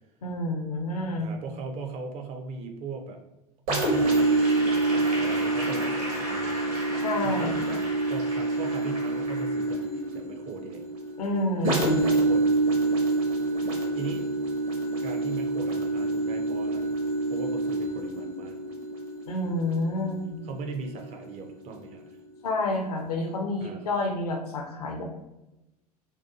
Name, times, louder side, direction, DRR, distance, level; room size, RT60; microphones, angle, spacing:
voice 1, 0.2-1.3 7.0-7.7 11.2-12.1 19.3-20.4 22.4-25.0, left 2 dB, 70° left, 3 dB, 0.6 m, -29 dB
voice 2, 1.2-3.2 3.7-4.3 4.9-6.8 7.2-7.8 8.1-9.8 10.1-10.8 11.8-12.6 13.9-14.2 15.0-17.0 17.3-18.6 20.4-22.2 23.6-23.8, right 4 dB, 35° right, 5 dB, 0.4 m, -39 dB
sound 1, 3.7-21.2 21.7-21.9, right 2 dB, 60° right, 0.8 m, -27 dB
Applause / Crowd, 3.7-10.0, equal, 75° right, 1.1 m, -37 dB
2.7 x 2.3 x 2.3 m, 0.95 s
figure-of-eight pair, 75°, 20 cm